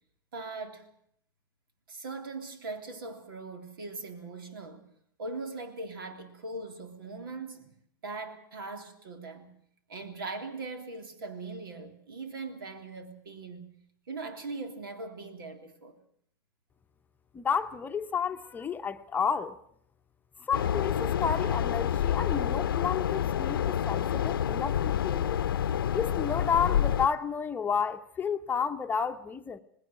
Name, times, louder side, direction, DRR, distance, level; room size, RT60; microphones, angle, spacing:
voice 1, 0.3-0.9 1.9-4.9 5.2-7.7 8.0-9.5 9.9-13.7 14.1-16.0, right 3 dB, 80° right, 3.3 m, -40 dB
voice 2, 17.3-19.6 20.4-25.4 25.9-29.6, left 6 dB, 15° left, 0.9 m, -31 dB
sound 1, 20.5-27.1, left 9 dB, 85° left, 0.8 m, -28 dB
19.5 x 17.0 x 9.0 m
hypercardioid pair, 125°, 12 cm